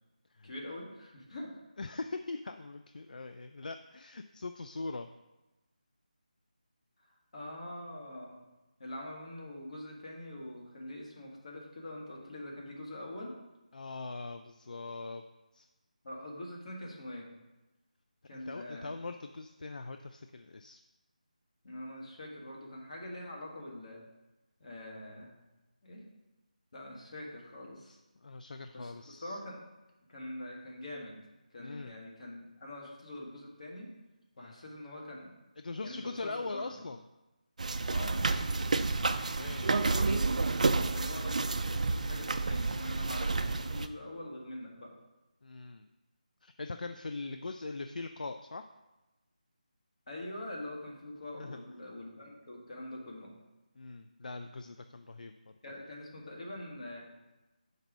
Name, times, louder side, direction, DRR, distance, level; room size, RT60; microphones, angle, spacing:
voice 1, 0.4-1.6 7.0-8.4 8.8-13.3 16.0-17.3 18.3-18.9 21.6-24.0 24.6-25.4 25.8-26.0 26.7-28.0 28.7-29.7 30.1-31.2 31.5-33.9 34.4-35.3 35.8-36.8 37.9-38.2 39.6-40.2 40.9-44.9 50.1-53.3 55.6-57.0, left 1 dB, 50° left, -2 dB, 1.7 m, -44 dB
voice 2, 1.8-5.1 13.7-15.2 15.5-15.7 18.3-20.8 27.9-29.4 31.6-32.0 34.4-34.5 35.6-37.0 39.4-39.8 45.4-45.9 46.4-48.7 51.4-51.6 53.8-55.5, left 3 dB, 70° left, 8 dB, 0.4 m, -41 dB
sound 1, 37.6-43.9, right 3 dB, 60° right, 0.4 m, -30 dB
5.3 x 4.0 x 6.0 m, 1.0 s
figure-of-eight pair, 170°, 4 cm